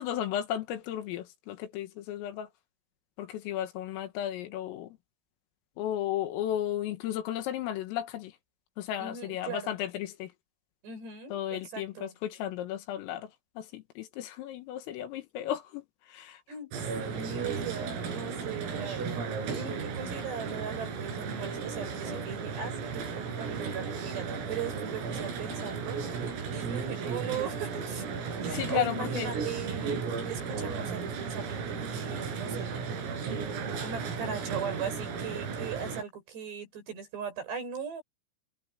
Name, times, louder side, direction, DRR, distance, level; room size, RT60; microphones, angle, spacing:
voice 1, 0.0-2.5 3.2-5.0 5.8-8.3 8.8-10.3 11.3-13.3 13.6-16.4 28.5-29.3, left 11 dB, 80° left, 4.3 m, -34 dB
voice 2, 9.0-9.8 10.8-12.1 16.5-19.0 19.5-26.0 26.5-28.0 28.4-30.0 30.3-32.8 33.8-38.0, right 6 dB, 55° right, 8.6 m, -39 dB
sound 1, 16.7-36.0, right 5 dB, 90° right, 7.9 m, -35 dB
omnidirectional pair, 5.9 m